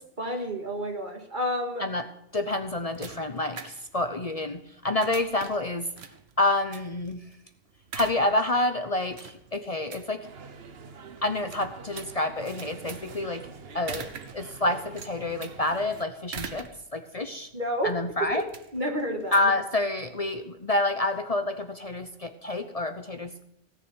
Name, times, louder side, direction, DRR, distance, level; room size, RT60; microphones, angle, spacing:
voice 1, 0.2-1.9 17.5-18.4 18.7-19.5, equal, 50° right, 3 dB, 2.3 m, -30 dB
voice 2, 2.3-5.9 6.4-7.2 7.9-10.2 11.2-13.5 13.7-16.7 16.9-17.5 17.8-18.4 19.3-23.4, left 2 dB, 40° left, 9 dB, 0.8 m, -28 dB
sound 1, 2.3-20.3, right 6 dB, 85° right, 1.3 m, -45 dB
sound 2, 10.2-16.1, right 5 dB, 70° right, 1.3 m, -45 dB
17.0 x 6.5 x 8.9 m, 0.75 s
omnidirectional pair, 1.1 m